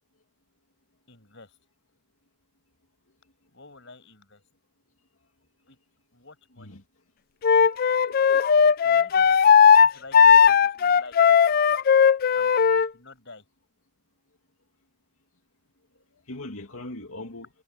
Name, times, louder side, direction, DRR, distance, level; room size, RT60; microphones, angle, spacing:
voice 1, 1.1-1.6 3.5-4.4 5.7-5.8 6.1-6.8 8.8-11.3 12.4-13.4, left 3 dB, 60° left, 6.0 m, -48 dB
Wind instrument woodwind instrument, 7.4-12.9, left 7 dB, 45° left, 0.3 m, -17 dB
voice 2, 8.0-8.7 9.1-9.3 16.1-17.5, left 2 dB, 85° left, 2.5 m, -41 dB
head